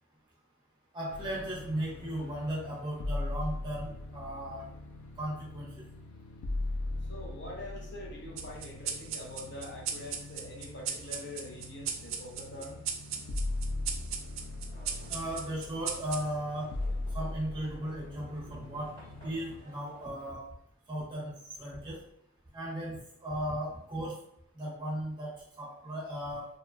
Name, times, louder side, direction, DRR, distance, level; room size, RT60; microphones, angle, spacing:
voice 1, 0.9-4.7 5.2-5.8 15.1-16.7 17.1-18.9 19.2-20.4 20.9-21.3 21.6-22.0 22.5-24.1 24.6-26.5, right 1 dB, 20° right, -5 dB, 0.7 m, -36 dB
sound 1, 1.1-19.6, left 2 dB, 90° left, 0.3 m, -40 dB
voice 2, 7.0-12.8 18.4-18.5, left 1 dB, 55° left, -2 dB, 0.7 m, -44 dB
sound 2, 8.4-17.3, right 7 dB, 75° right, 0.3 m, -39 dB
Livestock farm animals working animals, 14.7-20.3, equal, 20° left, 1.0 m, -56 dB
2.8 x 2.2 x 2.4 m, 0.73 s
head